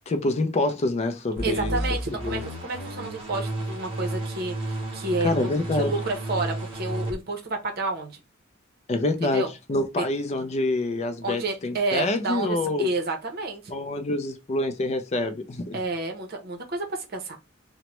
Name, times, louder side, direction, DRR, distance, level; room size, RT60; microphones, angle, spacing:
voice 1, 0.1-1.8 2.2-2.4 5.2-5.9 8.9-12.9 13.7-15.8, left 2 dB, 35° left, 0.4 m, -26 dB
sound 1, 1.4-7.2, right 1 dB, 30° right, 1.0 m, -32 dB
voice 2, 1.4-5.5 5.8-8.2 9.2-9.5 10.0-10.1 11.2-13.8 15.7-17.4, right 2 dB, 50° right, 0.7 m, -30 dB
3.0 x 2.1 x 2.9 m
head